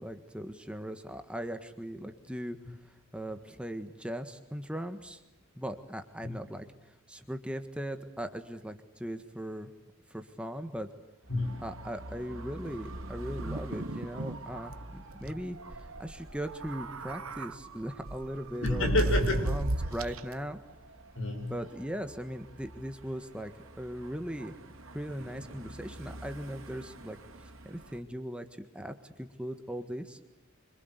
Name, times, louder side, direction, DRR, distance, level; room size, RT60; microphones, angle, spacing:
voice 1, 0.0-5.2 5.6-9.7 10.1-10.9 11.6-19.2 19.5-20.6 21.5-23.5 23.8-24.6 24.9-30.2, equal, 5° right, 7 dB, 1.6 m, -39 dB
Dog / Motorcycle, 11.2-28.0, right 2 dB, 70° right, 3.5 m, -47 dB
voice 2, 11.3-11.7 15.2-15.3 18.6-19.6 21.2-21.6, left 2 dB, 65° left, 5 dB, 7.1 m, -30 dB
sound 1, 13.4-14.4 14.7-14.8 15.1-15.3 16.5-17.5 18.1-20.3, right 2 dB, 90° right, 1.3 m, -33 dB
28.0 x 26.0 x 8.3 m, 0.95 s
head